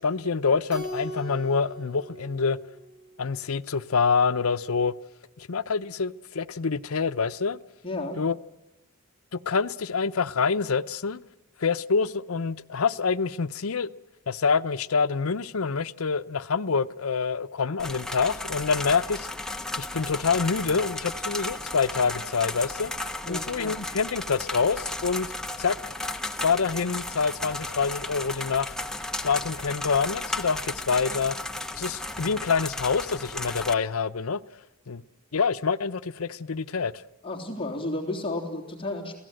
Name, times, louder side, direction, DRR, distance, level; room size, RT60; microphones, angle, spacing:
voice 1, 0.0-2.6 3.2-4.9 5.4-7.6 8.2-8.4 9.3-11.2 11.6-13.9 14.3-19.3 19.8-22.9 23.3-25.3 25.6-25.8 26.4-28.7 29.2-31.4 31.7-34.4 34.9-35.0 35.3-36.9, left 5 dB, 90° left, 0.7 m, -26 dB
Keyboard (musical), 0.7-3.3, equal, 55° right, 5.4 m, -39 dB
voice 2, 7.8-8.2 23.2-23.8 37.2-39.2, left 2 dB, 25° left, 3.3 m, -32 dB
sound 1, 17.8-33.7, left 2 dB, 5° left, 1.0 m, -34 dB
29.0 x 17.5 x 7.8 m
head